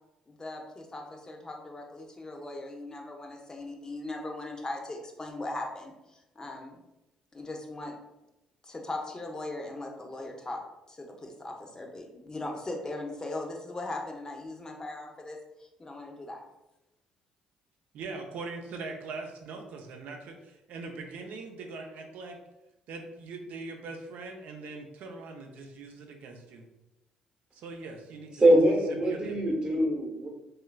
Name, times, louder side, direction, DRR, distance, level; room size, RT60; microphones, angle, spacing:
voice 1, 0.3-6.8 7.3-7.9 8.6-10.6 10.9-16.4, left 2 dB, 25° left, 1 dB, 0.6 m, -39 dB
voice 2, 17.9-22.4 22.9-26.7 27.5-28.4 29.1-29.3, right 3 dB, 70° right, 3 dB, 0.5 m, -41 dB
voice 3, 28.4-30.3, right 1 dB, 30° right, 0 dB, 0.9 m, -23 dB
3.1 x 2.3 x 2.2 m, 0.93 s
hypercardioid pair, 60°, 3 cm